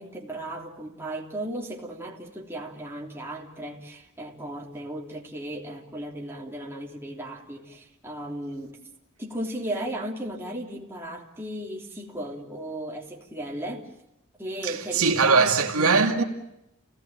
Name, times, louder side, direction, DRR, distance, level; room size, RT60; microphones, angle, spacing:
voice 1, 0.0-8.8 9.2-13.9 14.4-15.6, right 1 dB, 10° right, 3.4 m, -35 dB
voice 2, 14.6-16.2, right 4 dB, 80° right, 2.4 m, -21 dB
30.0 x 18.0 x 9.0 m
head